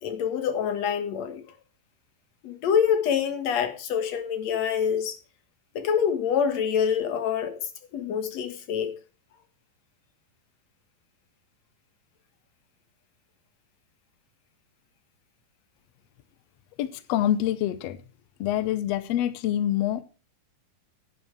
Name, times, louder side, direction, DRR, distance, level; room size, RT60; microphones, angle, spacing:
voice 1, 0.0-1.4 2.4-5.2 5.7-9.0, left 7 dB, 55° left, 2.4 m, -26 dB
voice 2, 16.8-18.0 18.4-20.0, left 12 dB, 90° left, 1.4 m, -26 dB
10.5 x 9.2 x 4.6 m
omnidirectional pair, 4.0 m